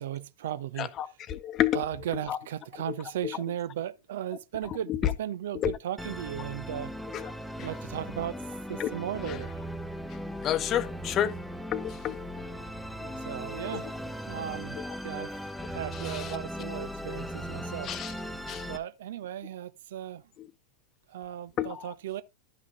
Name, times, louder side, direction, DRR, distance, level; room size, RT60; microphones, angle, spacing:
voice 1, 0.0-1.2 1.7-6.9 7.6-8.4 8.7-9.6 13.2-14.0 14.3-14.8 15.0-15.3 15.7-17.9 18.7-20.2 21.1-22.2, right 11 dB, 60° right, 0.6 m, -36 dB
voice 2, 0.8-1.8 2.3-2.4 3.2-3.4 4.9-5.1 5.5-5.8 7.1-7.3 8.8-8.9 9.2-9.3 10.4-11.3 11.7-12.4 13.0-13.1 13.7-13.8 16.0-16.4 17.8-18.1 18.5-18.7 21.6-21.9, left 11 dB, 30° left, 0.9 m, -30 dB
Musical instrument, 6.0-18.8, equal, ahead, 0.9 m, -38 dB
12.0 x 6.1 x 3.5 m
figure-of-eight pair, 90°, 0 cm